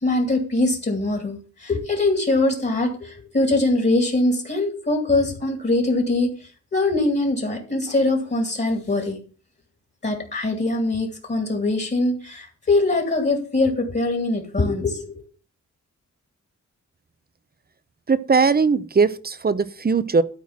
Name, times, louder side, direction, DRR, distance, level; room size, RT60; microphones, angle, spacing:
voice 1, 0.0-9.2 10.0-15.1, left 2 dB, 35° left, 4 dB, 2.5 m, -22 dB
voice 2, 18.1-20.2, right 4 dB, 30° right, 15 dB, 0.7 m, -19 dB
13.0 x 4.5 x 7.3 m, 0.39 s
wide cardioid pair, 115°, 30 cm